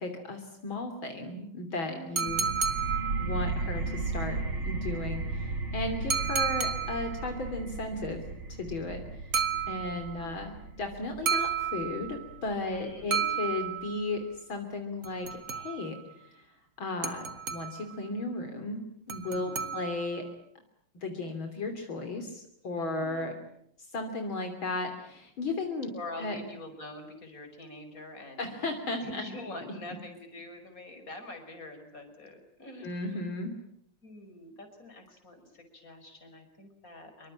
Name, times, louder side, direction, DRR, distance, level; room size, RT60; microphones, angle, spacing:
voice 1, 0.0-2.5 3.2-8.2 8.6-9.0 9.7-14.2 14.5-16.0 16.3-16.5 16.8-17.3 17.5-18.8 19.1-20.2 21.0-23.3 23.9-25.9 26.2-26.4 28.4-29.2 29.6-29.7 32.8-33.5, left 2 dB, 70° left, 5 dB, 3.9 m, -35 dB
voice 2, 1.9-2.7 8.8-9.2 9.5-10.5 12.6-13.3 19.2-19.8 22.7-23.5 25.9-28.6 29.0-33.3 34.0-37.3, left 2 dB, 40° left, 6 dB, 5.6 m, -46 dB
sound 1, 2.2-3.6 6.1-7.3 9.3-10.2 11.3-12.3 13.1-14.1 15.0-16.0 17.0-18.0 19.1-20.2, right 7 dB, 55° right, 2.3 m, -32 dB
sound 2, 2.3-13.7, right 3 dB, 75° right, 3.6 m, -36 dB
27.5 x 24.0 x 8.8 m, 0.71 s
omnidirectional pair, 2.3 m